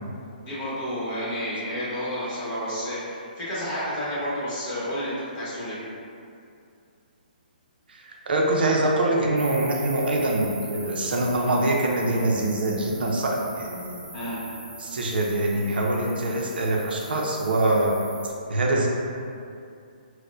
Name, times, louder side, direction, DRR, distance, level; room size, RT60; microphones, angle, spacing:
voice 1, 0.4-5.8 14.1-14.4, equal, 20° left, -10 dB, 1.0 m, -30 dB
voice 2, 7.9-14.0 14.8-17.9 18.5-18.9, right 1 dB, 75° right, -1 dB, 0.5 m, -24 dB
sound 1, 9.4-18.3, right 2 dB, 40° right, 1.1 m, -43 dB
4.2 x 2.1 x 2.4 m, 2.5 s
hypercardioid pair, 160°, 5 cm